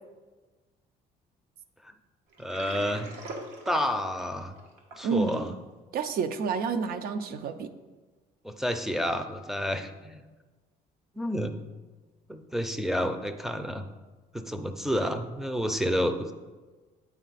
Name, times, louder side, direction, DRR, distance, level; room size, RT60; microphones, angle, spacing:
Water, 2.3-5.5, right 2 dB, 85° right, 1.3 m, -41 dB
voice 1, 2.4-3.1 3.7-4.5 5.0-5.5 8.4-10.2 11.2-11.5 12.3-13.8 14.3-16.3, equal, ahead, 5 dB, 0.5 m, -30 dB
voice 2, 5.0-5.6 5.9-7.7, right 5 dB, 65° right, 10 dB, 0.5 m, -29 dB
8.2 x 4.1 x 4.0 m, 1.3 s
cardioid pair, 110°, 17 cm